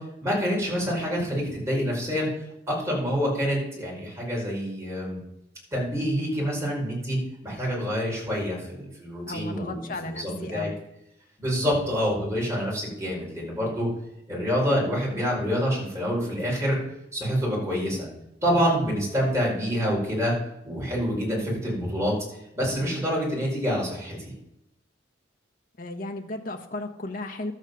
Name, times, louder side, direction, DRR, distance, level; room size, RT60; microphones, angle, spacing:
voice 1, 0.2-2.3 2.7-5.2 5.7-10.7 11.4-13.9 14.3-16.8 17.1-18.1 18.4-20.3 20.6-22.1 22.5-24.3, equal, 15° right, -4 dB, 5.0 m, -27 dB
voice 2, 9.3-10.8 25.8-27.5, left 2 dB, 45° left, 4 dB, 1.1 m, -34 dB
12.0 x 8.1 x 5.4 m, 0.84 s
head